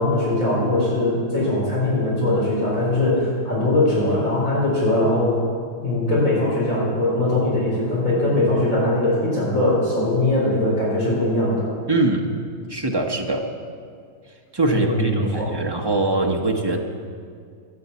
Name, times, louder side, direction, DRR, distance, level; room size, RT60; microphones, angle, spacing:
voice 1, 0.0-5.4 5.8-11.7 14.7-15.6, left 1 dB, 35° left, -7 dB, 4.6 m, -21 dB
voice 2, 11.9-12.3 12.7-13.5 14.5-16.8, right 2 dB, 25° right, 1 dB, 0.5 m, -22 dB
13.0 x 9.5 x 8.3 m, 2.1 s
omnidirectional pair, 2.4 m